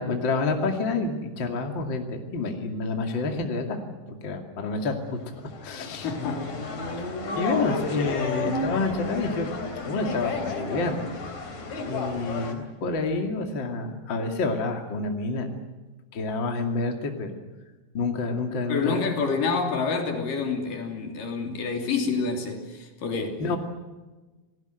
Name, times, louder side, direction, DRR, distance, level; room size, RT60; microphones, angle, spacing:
voice 1, 0.0-3.8 4.1-4.9 5.6-6.1 7.0-7.1 7.4-11.0 11.9-15.5 16.1-17.3 17.9-19.1 23.4-23.6, left 3 dB, 35° left, 3 dB, 2.8 m, -28 dB
sound 1, 5.2-12.5, left 3 dB, 55° left, 4.8 m, -32 dB
voice 2, 5.9-6.5 18.7-23.4, left 4 dB, 75° left, 3 dB, 4.7 m, -28 dB
28.5 x 19.0 x 8.0 m, 1.2 s
omnidirectional pair, 3.9 m